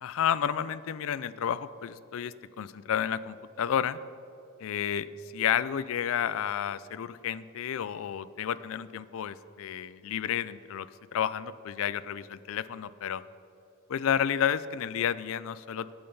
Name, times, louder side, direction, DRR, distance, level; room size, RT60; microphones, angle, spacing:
voice 1, 0.0-4.0 4.6-5.1 5.3-13.2 13.9-15.9, left 9 dB, 65° left, 16 dB, 0.4 m, -31 dB
8.9 x 8.7 x 5.4 m, 2.7 s
head